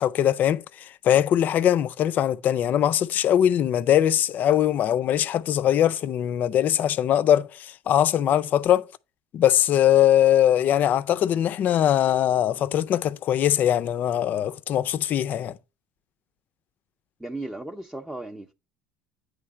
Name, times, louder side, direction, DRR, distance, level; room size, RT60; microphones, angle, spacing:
voice 1, 0.0-8.9 9.3-15.6, left 11 dB, 50° left, 0.5 m, -21 dB
voice 2, 17.2-18.5, right 2 dB, 5° right, 0.6 m, -35 dB
9.1 x 3.2 x 4.7 m
supercardioid pair, 90°, 4 cm